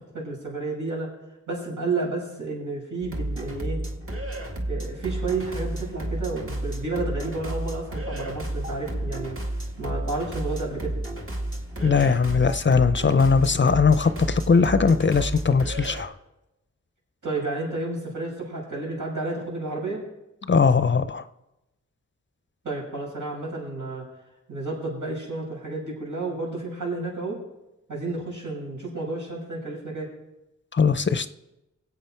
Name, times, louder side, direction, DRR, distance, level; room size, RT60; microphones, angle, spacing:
voice 1, 0.1-1.1 1.5-3.8 4.7-9.4 9.8-11.0 17.2-20.0 22.6-24.1 24.5-27.4 27.9-30.1, right 3 dB, 80° right, -4 dB, 6.8 m, -31 dB
sound 1, 3.0-16.1, right 1 dB, 45° right, 1.9 m, -32 dB
voice 2, 11.8-16.1 20.5-21.2 30.7-31.3, left 5 dB, 40° left, 12 dB, 0.6 m, -20 dB
22.5 x 8.3 x 4.5 m, 0.93 s
wide cardioid pair, 105°, 30 cm